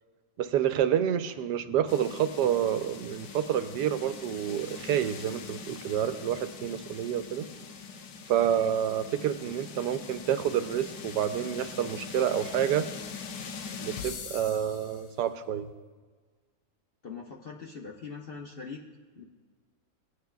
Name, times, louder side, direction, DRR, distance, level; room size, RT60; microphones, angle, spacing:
voice 1, 0.4-7.5 8.3-12.9 13.8-15.7, right 10 dB, 90° right, 10 dB, 1.2 m, -28 dB
sound 1, 1.9-15.1, left 6 dB, 85° left, 1.4 m, -42 dB
voice 2, 17.0-18.8 19.2-19.3, left 5 dB, 50° left, 0 dB, 0.7 m, -42 dB
17.5 x 9.7 x 2.3 m, 1.4 s
omnidirectional pair, 1.8 m